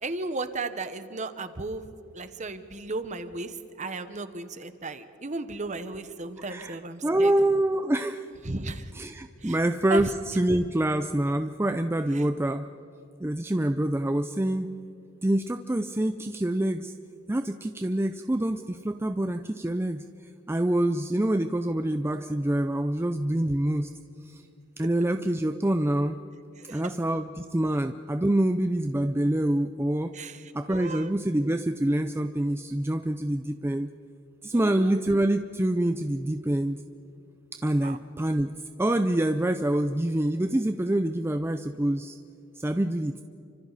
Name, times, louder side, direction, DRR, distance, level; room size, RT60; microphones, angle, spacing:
voice 1, 0.0-1.9 2.1-7.3 8.4-8.9 9.4-9.6 9.9-10.1 12.1-12.2 26.6-26.9 30.1-31.1 34.5-35.0 37.8-38.0, right 2 dB, 35° right, 10 dB, 1.1 m, -35 dB
voice 2, 6.4-6.8 7.0-8.2 9.0-12.7 13.2-14.8 15.2-16.9 17.3-20.1 20.5-23.9 24.3-24.4 24.8-26.2 26.7-30.1 30.5-33.9 34.4-36.8 37.6-42.2 42.6-43.2, right 1 dB, 10° right, 8 dB, 0.5 m, -26 dB
29.5 x 25.0 x 4.1 m, 2.7 s
head